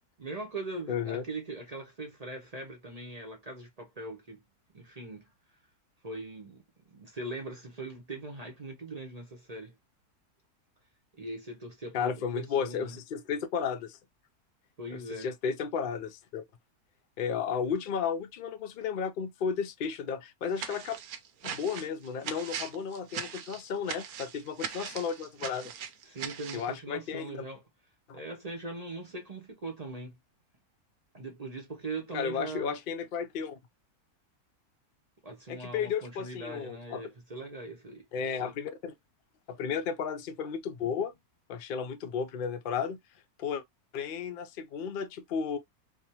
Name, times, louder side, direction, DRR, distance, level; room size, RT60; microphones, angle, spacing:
voice 1, 0.2-4.4 4.7-5.3 6.0-9.8 11.1-13.0 14.8-15.3 26.0-27.6 28.1-30.2 31.1-32.8 35.2-38.5, right 2 dB, 40° right, 0.6 m, -41 dB
voice 2, 0.9-1.2 11.9-14.0 14.9-16.4 17.2-21.0 21.4-25.7 26.5-27.4 28.1-28.2 32.1-33.6 35.5-37.0 38.1-38.9 39.5-41.1 41.5-43.0 43.4-43.6 43.9-45.6, left 6 dB, 75° left, 0.4 m, -33 dB
sound 1, 20.5-26.7, right 8 dB, 70° right, 1.1 m, -40 dB
3.3 x 2.1 x 2.8 m
omnidirectional pair, 1.6 m